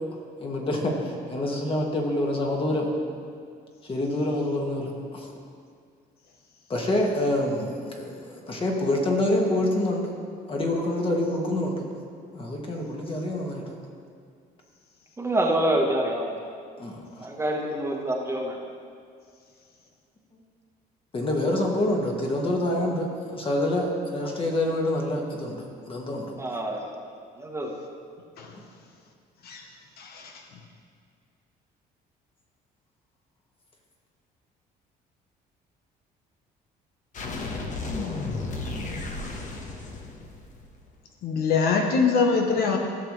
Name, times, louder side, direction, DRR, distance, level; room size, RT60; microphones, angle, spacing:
voice 1, 0.4-2.9 3.8-5.3 6.7-10.1 10.5-11.8 12.3-13.7 16.8-17.0 21.1-26.6, left 1 dB, 30° left, -1 dB, 1.8 m, -27 dB
voice 2, 15.2-16.2 17.2-18.5 26.4-26.8 27.4-27.7, right 1 dB, 15° right, 0 dB, 1.2 m, -26 dB
voice 3, 30.0-30.3 41.2-42.8, left 5 dB, 65° left, 3 dB, 1.0 m, -23 dB
sound 1, 37.1-40.8, left 3 dB, 50° left, 1.2 m, -33 dB
16.0 x 7.1 x 3.2 m, 2.2 s
cardioid pair, 110°, 17 cm